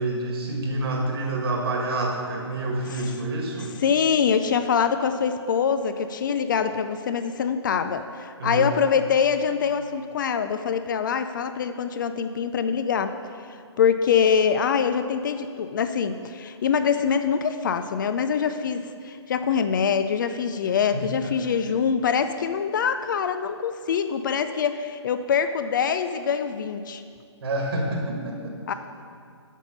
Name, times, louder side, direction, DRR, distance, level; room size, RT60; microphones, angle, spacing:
voice 1, 0.0-3.7 8.4-8.7 20.9-21.3 27.4-28.6, right 2 dB, 55° right, 1 dB, 1.7 m, -28 dB
voice 2, 3.8-13.1 13.8-27.0 28.7-28.8, left 7 dB, 45° left, 10 dB, 0.4 m, -24 dB
8.1 x 5.7 x 5.3 m, 2.2 s
figure-of-eight pair, 140°, 15 cm